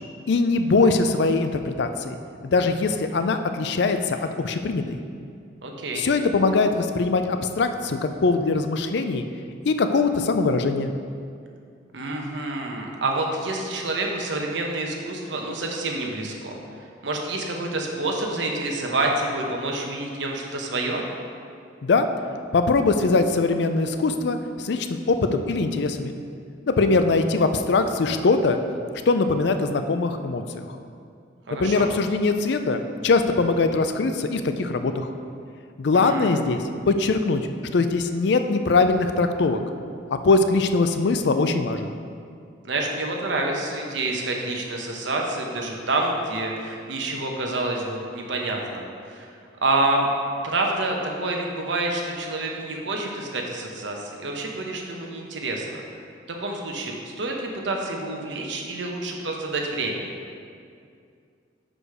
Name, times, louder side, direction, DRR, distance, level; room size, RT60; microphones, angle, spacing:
voice 1, 0.3-2.2 2.4-5.0 5.9-9.2 9.7-10.9 21.8-22.1 22.5-26.1 26.7-28.6 29.1-30.8 31.6-35.1 35.8-36.6 36.9-37.5 37.7-39.6 40.1-41.9, left 3 dB, 60° left, 8 dB, 0.4 m, -22 dB
voice 2, 5.6-6.1 11.9-21.0 31.5-31.9 35.9-36.4 42.6-49.3 49.6-50.1 50.4-55.8 56.3-60.1, right 2 dB, 70° right, 1 dB, 0.9 m, -28 dB
6.4 x 5.0 x 4.9 m, 2.4 s
head